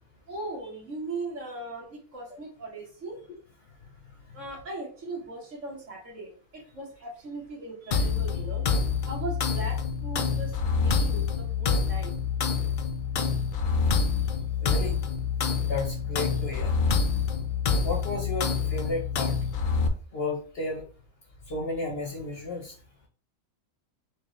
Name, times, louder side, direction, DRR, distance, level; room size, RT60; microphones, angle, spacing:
voice 1, 0.3-3.2 4.3-8.7 9.1-12.1, right 2 dB, 60° right, -2 dB, 1.7 m, -38 dB
sound 1, 7.9-19.9, left 5 dB, 80° left, 0.4 m, -27 dB
voice 2, 14.6-14.9 15.6-16.7 17.8-19.3 20.1-20.8 21.5-22.7, left 3 dB, 50° left, 0 dB, 0.9 m, -32 dB
4.5 x 2.4 x 3.1 m, 0.40 s
omnidirectional pair, 1.5 m